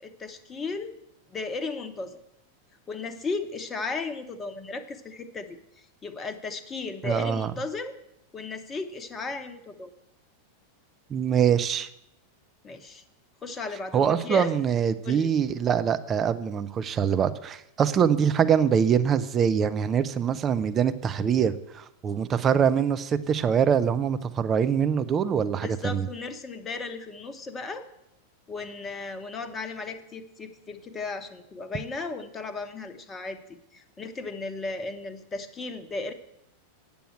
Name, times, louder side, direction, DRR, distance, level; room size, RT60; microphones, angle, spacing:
voice 1, 0.0-0.9 1.3-2.2 2.9-5.6 6.0-8.0 8.3-9.9 12.6-13.0 13.4-14.5 15.0-15.3 25.6-27.8 28.5-36.1, left 3 dB, 20° left, 8 dB, 1.1 m, -35 dB
voice 2, 7.0-7.5 11.1-11.9 13.9-26.1, right 7 dB, 25° right, 11 dB, 0.6 m, -24 dB
9.0 x 6.9 x 7.5 m, 0.80 s
figure-of-eight pair, 90°, 0 cm